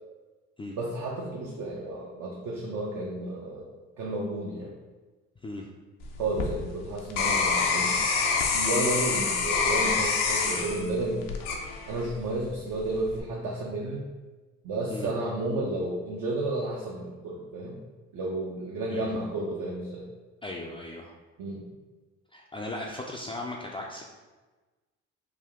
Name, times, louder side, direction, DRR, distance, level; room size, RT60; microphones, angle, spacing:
voice 1, 0.7-4.7 6.2-8.0 8.5-11.3 11.9-14.0 14.6-17.8 18.1-20.1 21.4-21.6, right 2 dB, 60° right, -3 dB, 0.7 m, -32 dB
sound 1, 6.0-12.2 12.7-13.2, left 5 dB, 80° left, 0.6 m, -27 dB
voice 2, 20.4-21.1 22.3-24.0, left 2 dB, 15° left, -2 dB, 0.4 m, -37 dB
3.5 x 2.2 x 3.5 m, 1.2 s
supercardioid pair, 70°, 33 cm